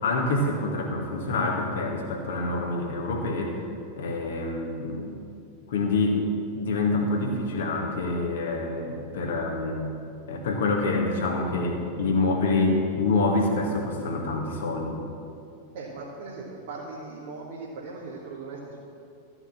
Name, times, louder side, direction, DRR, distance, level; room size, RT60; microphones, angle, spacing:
voice 1, 0.0-3.6 4.0-5.2 5.7-6.2 6.5-9.9 10.3-15.0, left 2 dB, 60° left, 1 dB, 2.1 m, -26 dB
voice 2, 15.7-18.8, right 3 dB, 55° right, -5 dB, 1.9 m, -39 dB
13.5 x 7.0 x 7.2 m, 2.5 s
figure-of-eight pair, 90°, 0 cm